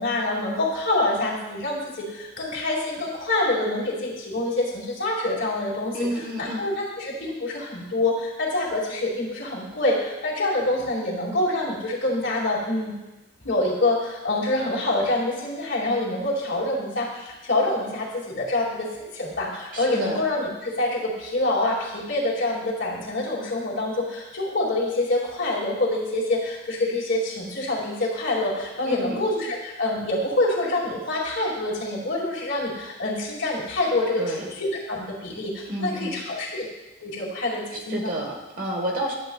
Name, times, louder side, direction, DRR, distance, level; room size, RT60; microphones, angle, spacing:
voice 1, 0.0-12.9 13.4-36.6 37.0-38.2, left 2 dB, 70° left, -5 dB, 2.4 m, -26 dB
voice 2, 5.9-6.6 19.7-20.2 28.9-29.3 34.2-34.5 35.7-36.1 37.9-39.1, right 1 dB, 50° right, 0 dB, 1.3 m, -30 dB
11.0 x 7.7 x 2.4 m, 1.1 s
head